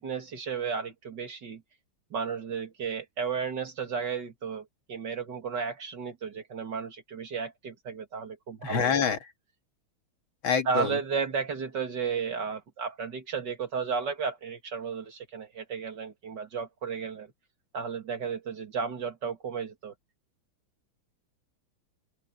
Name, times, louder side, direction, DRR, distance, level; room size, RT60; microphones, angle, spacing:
voice 1, 0.0-1.6 2.1-9.0 10.6-17.3 17.7-19.9, right 5 dB, 55° right, 2.7 m, -33 dB
voice 2, 8.6-9.2 10.4-10.9, left 6 dB, 65° left, 2.7 m, -26 dB
open air
omnidirectional pair, 2.3 m